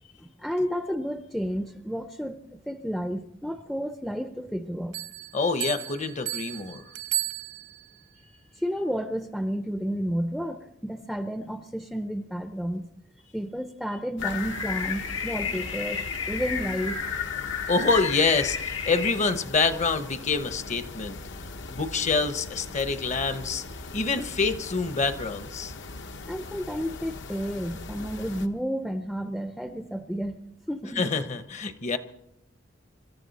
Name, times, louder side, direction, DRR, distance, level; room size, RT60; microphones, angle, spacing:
voice 1, 0.2-4.9 8.6-12.9 13.3-17.0 26.3-30.4 30.7-31.1, equal, ahead, 9 dB, 0.5 m, -31 dB
Bell, 4.9-8.0, right 15 dB, 70° right, 1.0 m, -34 dB
voice 2, 5.3-6.8 17.7-21.2 21.7-23.6 23.9-25.7 31.0-32.0, left 4 dB, 35° left, 12 dB, 0.9 m, -26 dB
sound 1, 14.2-19.1, left 6 dB, 90° left, 1.9 m, -32 dB
sound 2, 14.2-28.5, left 2 dB, 65° left, 0.9 m, -40 dB
25.5 x 13.0 x 4.1 m, 0.78 s
head